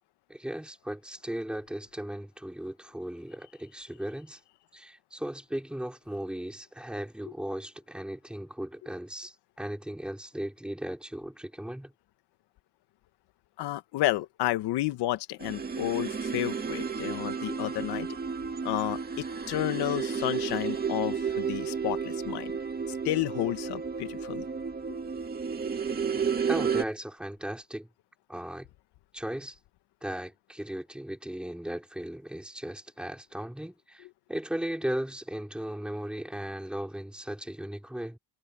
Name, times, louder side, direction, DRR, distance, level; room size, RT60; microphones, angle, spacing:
voice 1, 0.3-4.4 4.7-11.9 26.5-27.9 28.3-28.7 29.1-29.6 30.0-38.2, right 1 dB, ahead, 4.6 m, -37 dB
voice 2, 13.6-18.1 18.6-22.5 22.9-24.4 24.9-25.0, left 16 dB, 75° left, 1.5 m, -31 dB
sound 1, 15.4-26.8, right 6 dB, 25° right, 2.1 m, -32 dB
cardioid pair, 130°, 40 cm